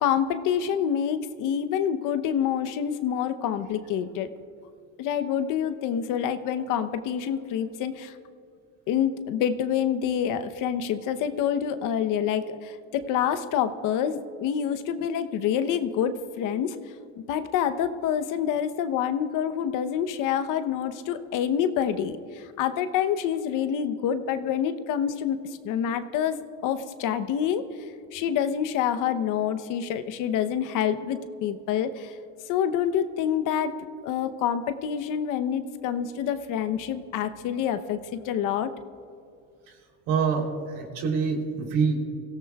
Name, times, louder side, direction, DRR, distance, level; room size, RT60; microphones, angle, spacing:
voice 1, 0.0-4.3 5.0-8.2 8.9-16.8 17.3-25.4 25.6-26.4 26.6-32.1 32.5-33.7 34.0-38.7, left 9 dB, 65° left, 10 dB, 0.9 m, -27 dB
voice 2, 40.1-41.9, right 5 dB, 70° right, 2 dB, 3.4 m, -26 dB
24.0 x 16.5 x 2.4 m, 2.4 s
cardioid pair, 115°, 35 cm